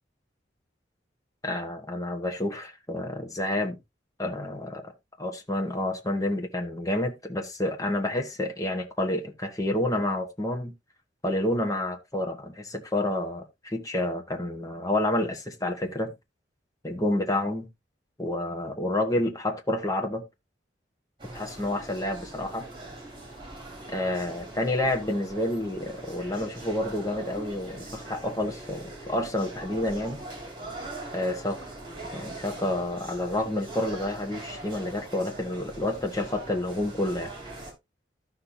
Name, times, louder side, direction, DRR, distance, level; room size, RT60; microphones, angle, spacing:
voice 1, 1.4-3.8 4.2-4.9 5.2-10.7 11.2-16.1 16.8-17.7 18.2-20.2 21.3-22.7 23.9-30.2 31.1-31.6 32.1-37.3, left 1 dB, 20° left, 1.5 m, -29 dB
sound 1, 21.2-37.7, right 2 dB, 25° right, 3.6 m, -42 dB
13.5 x 5.7 x 2.8 m
head